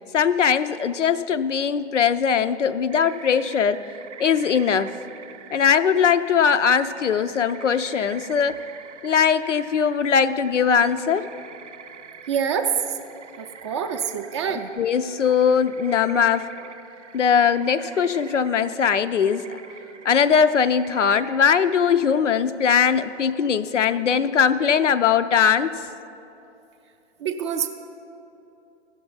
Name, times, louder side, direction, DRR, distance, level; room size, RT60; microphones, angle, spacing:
voice 1, 0.1-3.8 4.2-4.9 5.5-8.6 9.0-11.3 14.5-16.7 17.1-19.6 20.0-25.7, left 7 dB, 90° left, 11 dB, 0.5 m, -20 dB
sound 1, 2.9-22.2, right 7 dB, 80° right, 0.6 m, -45 dB
voice 2, 12.3-13.0 13.4-14.7 27.2-27.7, right 7 dB, 25° right, 6 dB, 0.4 m, -26 dB
15.0 x 6.0 x 5.4 m, 2.8 s
figure-of-eight pair, 120°, 35 cm